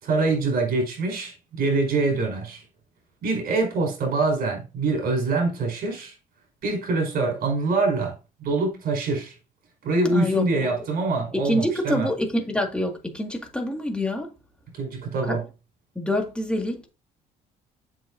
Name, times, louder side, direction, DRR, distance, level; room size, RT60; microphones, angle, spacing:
voice 1, 0.0-2.6 3.2-6.1 6.6-8.1 8.4-9.3 9.8-12.1 14.7-15.4, right 3 dB, 60° right, 4.9 m, -24 dB
voice 2, 10.1-10.7 11.3-14.3 15.2-15.4 16.0-16.9, left 1 dB, 5° left, 2.0 m, -26 dB
7.8 x 6.6 x 2.6 m
cardioid pair, 110°, 17 cm